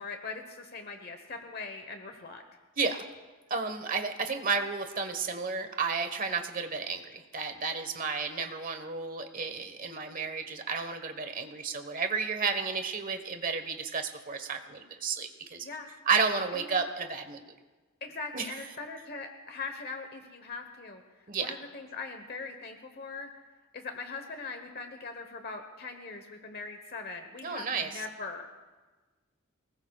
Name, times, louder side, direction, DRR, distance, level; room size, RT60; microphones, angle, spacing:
voice 1, 0.0-2.4 15.6-15.9 16.5-16.9 18.0-23.3 23.7-28.5, left 4 dB, 50° left, 5 dB, 1.1 m, -41 dB
voice 2, 3.5-15.7 16.1-17.4 18.3-18.4 21.3-21.5 27.4-28.0, right 5 dB, 40° right, 7 dB, 1.3 m, -32 dB
26.0 x 20.0 x 2.4 m, 1.3 s
head